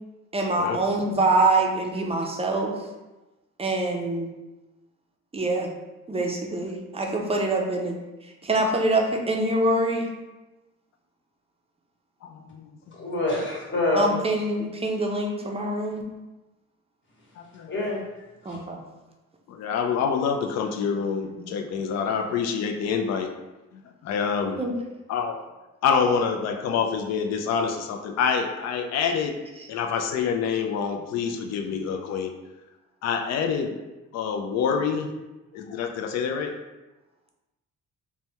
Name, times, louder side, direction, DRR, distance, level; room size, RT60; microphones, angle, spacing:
voice 1, 0.3-2.8 3.6-4.3 5.3-5.7 6.1-8.0 8.4-10.1 13.9-16.0 18.4-18.8 24.6-24.7 29.6-29.7, right 2 dB, 20° right, 1 dB, 0.5 m, -25 dB
voice 2, 12.2-12.7 17.4-17.9 19.5-23.3 24.0-24.6 25.1-25.4 25.8-29.3 29.7-32.3 33.0-33.8 34.1-35.1 35.5-36.5, left 6 dB, 60° left, 4 dB, 0.4 m, -26 dB
voice 3, 13.0-14.1 17.7-18.0 18.4-18.7, left 2 dB, 40° left, -3 dB, 1.1 m, -26 dB
3.2 x 2.2 x 2.8 m, 1.1 s
cardioid pair, 90°, 30 cm